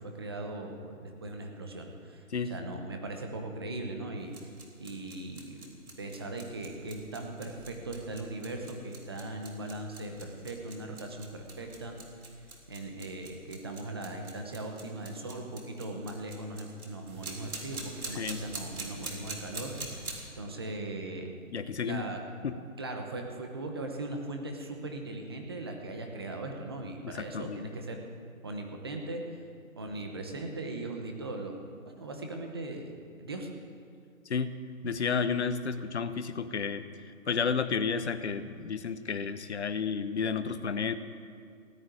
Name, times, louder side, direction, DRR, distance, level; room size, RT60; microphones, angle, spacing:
voice 1, 0.0-2.2 2.5-4.5 4.8-5.7 6.0-12.0 12.4-22.2 22.8-28.0 28.4-29.4 29.7-32.9 33.2-33.5, right 2 dB, 15° right, 3 dB, 0.9 m, -39 dB
voice 2, 2.3-2.7 18.2-18.4 21.5-22.0 22.4-22.6 27.0-27.6 34.3-34.6 34.8-41.0, left 5 dB, 50° left, 11 dB, 1.0 m, -32 dB
sound 1, 4.2-20.2, right 3 dB, 85° right, 3.7 m, -45 dB
17.0 x 9.5 x 9.1 m, 2.3 s
hypercardioid pair, 170°, 43 cm